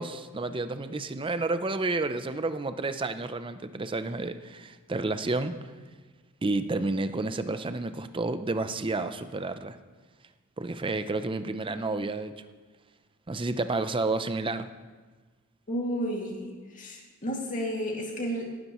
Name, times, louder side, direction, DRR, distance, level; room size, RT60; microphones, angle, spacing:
voice 1, 0.0-5.6 6.4-9.8 10.6-12.3 13.3-14.7, right 3 dB, 25° right, 10 dB, 0.6 m, -30 dB
voice 2, 15.7-18.5, equal, 35° left, -1 dB, 2.4 m, -32 dB
18.0 x 12.5 x 3.1 m, 1.4 s
head